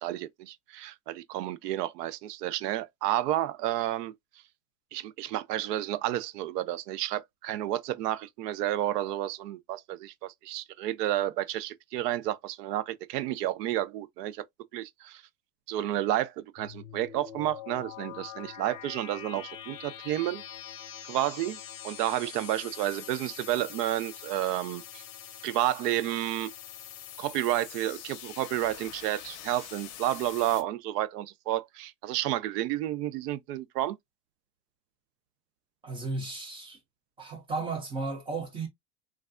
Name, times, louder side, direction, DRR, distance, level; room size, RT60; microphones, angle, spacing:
voice 1, 0.0-4.1 4.9-14.4 14.7-15.2 15.7-20.4 21.1-25.0 25.4-26.5 27.2-34.0, right 13 dB, 80° right, 0.6 m, -31 dB
sound 1, 16.6-30.6, left 10 dB, 35° left, 0.6 m, -44 dB
voice 2, 35.8-36.8 37.2-38.7, right 3 dB, 15° right, 0.3 m, -34 dB
3.2 x 2.4 x 2.4 m
supercardioid pair, 140°, 47 cm